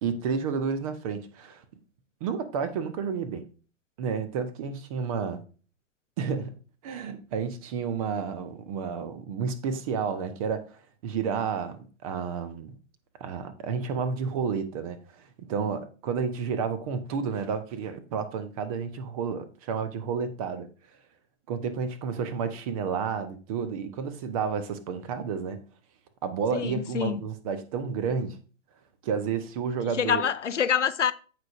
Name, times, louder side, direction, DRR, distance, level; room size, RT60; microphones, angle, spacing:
voice 1, 0.0-1.6 2.2-3.4 4.0-5.4 6.2-6.6 6.8-10.7 11.0-12.8 13.2-20.7 21.5-25.6 26.2-28.4 29.0-30.2, right 6 dB, 25° right, 0.9 m, -31 dB
voice 2, 26.5-27.2 29.9-31.1, left 8 dB, 65° left, 0.7 m, -26 dB
15.0 x 5.0 x 2.5 m
figure-of-eight pair, 115°, 39 cm